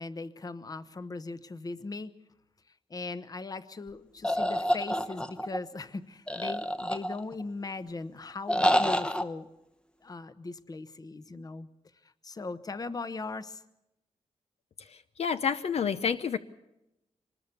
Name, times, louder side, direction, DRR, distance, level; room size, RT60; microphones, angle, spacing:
voice 1, 0.0-2.1 2.9-9.5 10.0-11.7 12.0-13.6, left 3 dB, 35° left, 13 dB, 1.0 m, -39 dB
sound 1, 4.2-5.6 6.3-7.4 8.5-9.2, equal, 10° left, 0.9 m, -27 dB
voice 2, 14.8-16.4, left 7 dB, 65° left, 11 dB, 0.8 m, -29 dB
25.0 x 20.5 x 7.0 m, 0.89 s
wide cardioid pair, 130°, 12 cm